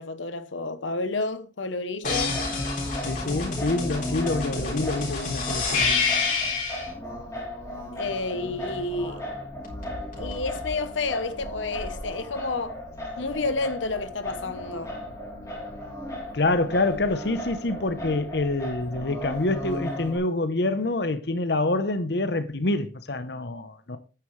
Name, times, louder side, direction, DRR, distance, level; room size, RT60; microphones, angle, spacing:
voice 1, 0.0-2.4 7.9-9.2 10.2-12.8 13.2-14.9, left 3 dB, 90° left, 0.9 m, -30 dB
sound 1, 2.0-6.9 9.6-10.7, left 4 dB, 45° left, 3.7 m, -28 dB
Singing, 2.0-20.2, left 1 dB, 15° left, 3.1 m, -36 dB
voice 2, 3.1-6.0 16.3-24.0, left 2 dB, 60° left, 0.9 m, -26 dB
9.7 x 9.2 x 3.2 m
head